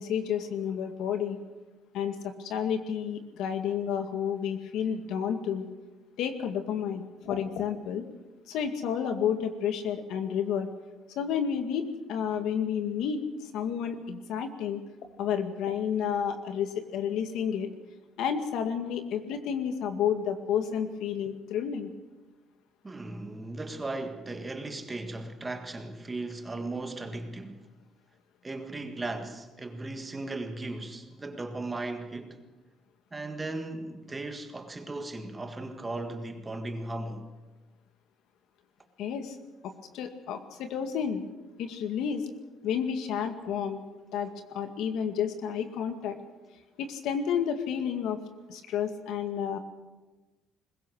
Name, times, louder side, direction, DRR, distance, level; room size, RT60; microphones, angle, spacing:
voice 1, 0.0-1.4 1.9-5.7 6.2-8.0 8.5-10.7 11.2-13.2 13.5-14.8 15.2-17.7 18.2-21.9 39.0-39.4 39.6-41.2 41.6-42.3 42.6-43.8 44.1-46.2 46.8-48.2 48.5-49.6, left 8 dB, 75° left, 2.1 m, -31 dB
voice 2, 22.8-27.7 28.4-32.4 33.1-37.3, right 2 dB, 15° right, 1.7 m, -37 dB
22.0 x 20.5 x 6.4 m
cardioid pair, 170°, 0 cm